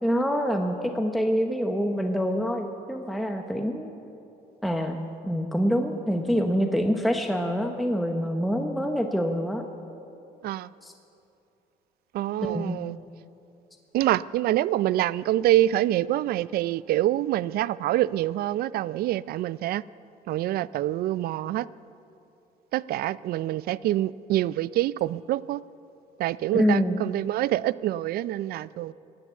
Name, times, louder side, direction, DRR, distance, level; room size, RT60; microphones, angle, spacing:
voice 1, 0.0-3.9 4.6-5.0 5.2-9.6 10.8-10.9 12.4-12.8 26.5-27.0, equal, ahead, 3 dB, 0.8 m, -26 dB
voice 2, 12.1-13.0 13.9-19.8 20.3-21.7 22.7-25.6 26.2-28.9, right 14 dB, 65° right, 19 dB, 0.4 m, -26 dB
16.0 x 9.8 x 8.1 m, 2.8 s
cardioid pair, 110°, 17 cm